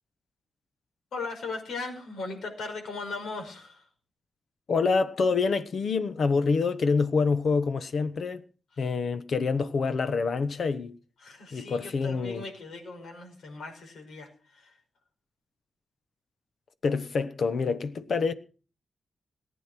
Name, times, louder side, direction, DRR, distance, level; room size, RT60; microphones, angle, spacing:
voice 1, 1.1-3.9 8.7-8.9 11.2-14.8, left 3 dB, 85° left, 5.4 m, -38 dB
voice 2, 4.7-8.4 8.8-10.9 11.5-12.4 16.8-18.3, left 4 dB, 55° left, 1.1 m, -26 dB
18.5 x 9.4 x 6.0 m
wide cardioid pair, 160°, 0 cm